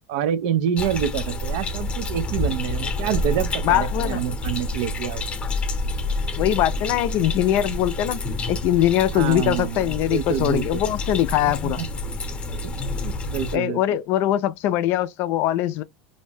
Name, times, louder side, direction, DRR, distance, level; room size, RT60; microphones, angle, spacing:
voice 1, 0.1-5.2 9.1-10.8 11.6-11.7 12.6-14.0, right 9 dB, 70° right, 0.5 m, -27 dB
sound 1, 0.8-13.6, left 2 dB, 25° left, 0.8 m, -28 dB
voice 2, 3.6-4.2 6.4-8.2 8.5-11.8 13.5-15.8, left 13 dB, 50° left, 0.3 m, -22 dB
2.6 x 2.1 x 3.2 m
supercardioid pair, 135°, 5 cm